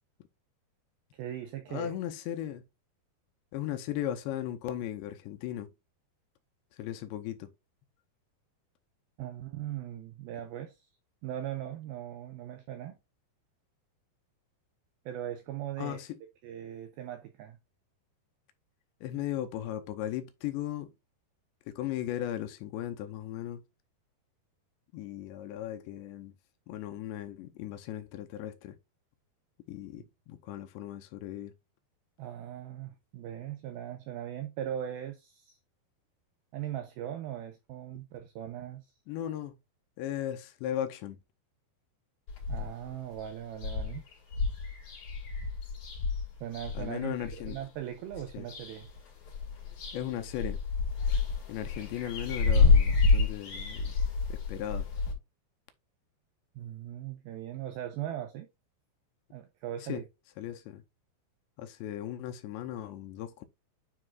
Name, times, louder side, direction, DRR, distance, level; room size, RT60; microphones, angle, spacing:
voice 1, 1.1-1.9 9.2-10.9 11.2-13.0 15.1-16.0 16.4-17.6 32.2-35.6 36.5-38.9 42.5-44.0 46.4-48.9 56.6-58.5 59.3-60.0, right 11 dB, 85° right, 2.1 m, -39 dB
voice 2, 1.7-2.6 3.5-5.7 6.7-7.5 15.8-16.2 19.0-20.9 21.7-23.6 24.9-26.3 26.7-28.8 29.7-31.5 39.1-39.6 40.0-41.2 46.7-47.6 48.3-48.5 49.9-50.6 51.5-53.9 54.3-54.9 59.9-60.0 60.4-60.8 61.6-63.4, left 12 dB, 85° left, 2.9 m, -37 dB
sound 1, 42.3-42.9 43.2-43.3 43.6-47.6 48.1-49.0 49.3-55.1, left 4 dB, 50° left, 3.1 m, -28 dB
9.8 x 4.7 x 2.4 m
omnidirectional pair, 5.1 m